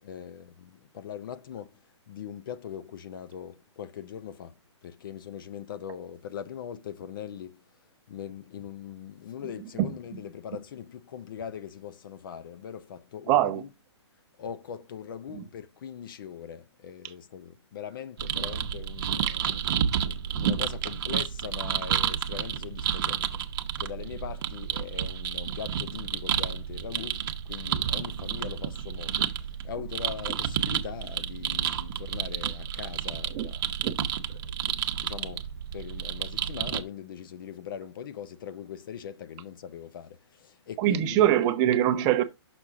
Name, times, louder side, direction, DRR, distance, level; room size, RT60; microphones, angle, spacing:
voice 1, 0.0-1.8 2.1-4.5 4.8-7.6 8.1-13.7 14.4-19.6 20.0-23.4 23.8-29.4 29.6-33.6 34.3-41.2, left 8 dB, 45° left, 0.6 m, -41 dB
voice 2, 9.8-10.2 13.3-13.6 15.3-15.4 17.0-17.1 19.3-19.4 19.9-20.0 33.3-33.5 33.8-33.9 40.8-42.2, right 12 dB, 20° right, 0.6 m, -24 dB
sound 1, 18.2-36.8, right 9 dB, 45° right, 0.9 m, -30 dB
6.2 x 6.0 x 3.6 m
hypercardioid pair, 155°, 15 cm